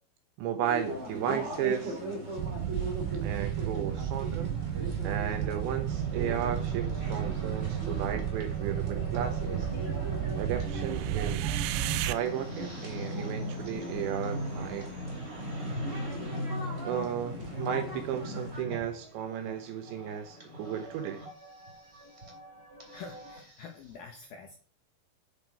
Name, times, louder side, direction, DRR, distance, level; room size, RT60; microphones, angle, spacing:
voice 1, 0.4-2.0 3.1-4.5 5.0-9.7 10.3-11.4 11.9-14.9 16.8-21.2, right 9 dB, 75° right, 6 dB, 2.9 m, -34 dB
sound 1, 0.6-18.6, right 1 dB, 40° right, 1.0 m, -40 dB
sound 2, 2.4-12.1, right 10 dB, 90° right, 3.4 m, -32 dB
sound 3, 5.8-24.0, left 1 dB, 20° right, 2.1 m, -41 dB
voice 2, 22.9-24.5, left 5 dB, 75° left, 3 dB, 2.3 m, -46 dB
9.0 x 8.6 x 4.7 m, 0.43 s
omnidirectional pair, 6.0 m